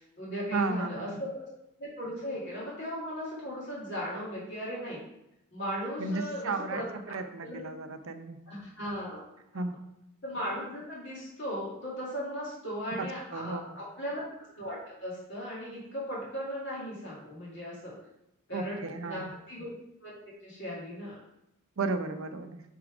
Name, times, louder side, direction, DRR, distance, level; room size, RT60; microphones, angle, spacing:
voice 1, 0.0-1.5 1.8-5.0 5.5-7.2 7.4-7.6 8.5-9.3 10.2-14.2 14.5-17.9 18.5-19.7 20.0-20.1 20.4-21.2, equal, 55° left, -6 dB, 2.0 m, -37 dB
voice 2, 0.5-1.2 6.0-8.4 9.5-9.7 13.0-13.6 18.5-19.2 21.8-22.6, right 3 dB, 65° right, 7 dB, 0.6 m, -34 dB
5.9 x 3.7 x 4.8 m, 0.84 s
head